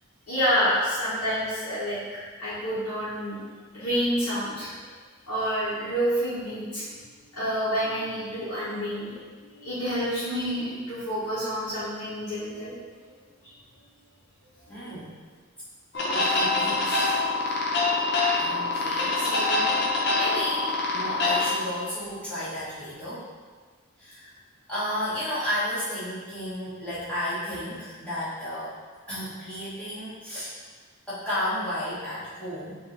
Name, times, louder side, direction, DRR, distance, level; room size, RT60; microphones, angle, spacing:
voice 1, 0.3-2.0 2.4-3.4 3.7-4.7 5.3-6.9 7.3-9.1 9.4-12.7 14.7-14.9, equal, 90° left, -13 dB, 1.4 m, -28 dB
voice 2, 14.6-15.1 15.9-17.2 18.4-23.2 24.0-24.3 24.7-28.7 29.1-30.5 31.1-32.8, equal, 5° left, -13 dB, 1.3 m, -33 dB
sound 1, 15.9-21.5, left 3 dB, 50° left, 0.7 m, -25 dB
5.3 x 2.9 x 3.3 m, 1.5 s
head